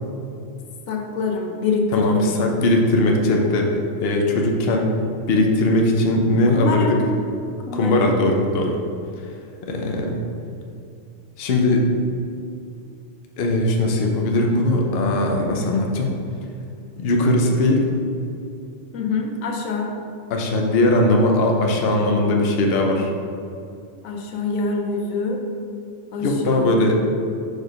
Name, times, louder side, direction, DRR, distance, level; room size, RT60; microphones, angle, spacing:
voice 1, 0.9-2.3 6.6-7.0 7.7-8.0 18.9-19.9 24.0-25.4 26.1-26.9, left 4 dB, 90° left, 2 dB, 1.2 m, -25 dB
voice 2, 1.9-4.9 5.3-7.0 7.7-8.8 9.6-10.2 11.4-11.9 13.4-16.1 17.0-17.9 20.3-23.1 26.2-26.9, left 1 dB, 55° left, 1 dB, 0.9 m, -19 dB
4.8 x 4.3 x 5.2 m, 2.4 s
omnidirectional pair, 1.4 m